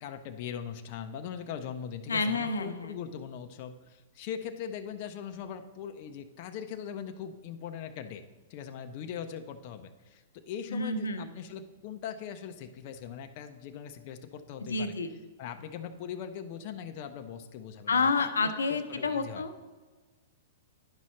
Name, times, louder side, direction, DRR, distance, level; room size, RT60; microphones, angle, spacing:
voice 1, 0.0-8.2 8.5-15.0 15.4-19.4, left 8 dB, 50° left, 6 dB, 0.6 m, -41 dB
voice 2, 2.1-2.9 10.7-11.3 14.6-15.1 17.9-19.6, left 4 dB, 85° left, 8 dB, 0.7 m, -29 dB
10.5 x 5.5 x 3.2 m, 1.3 s
hypercardioid pair, 115°, 0 cm